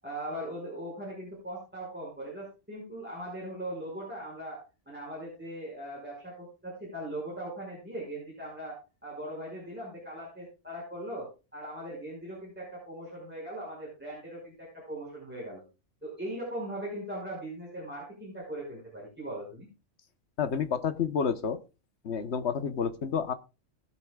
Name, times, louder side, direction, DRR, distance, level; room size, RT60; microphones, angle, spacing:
voice 1, 0.0-15.6 16.0-19.7, right 1 dB, 10° right, -6 dB, 5.9 m, -40 dB
voice 2, 20.4-21.6 22.0-23.3, left 6 dB, 60° left, 11 dB, 1.3 m, -29 dB
21.0 x 7.7 x 2.3 m, 0.30 s
omnidirectional pair, 1.3 m